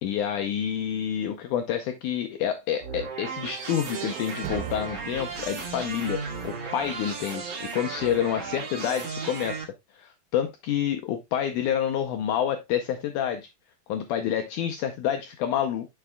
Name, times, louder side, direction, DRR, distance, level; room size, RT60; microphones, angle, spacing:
voice 1, 0.0-9.7 9.9-13.5 13.9-15.9, left 9 dB, 75° left, 1.9 m, -28 dB
sound 1, 2.8-9.6, right 5 dB, 45° right, 2.0 m, -35 dB
sound 2, 3.4-7.4, right 11 dB, 80° right, 2.1 m, -41 dB
10.0 x 5.8 x 2.2 m
omnidirectional pair, 4.1 m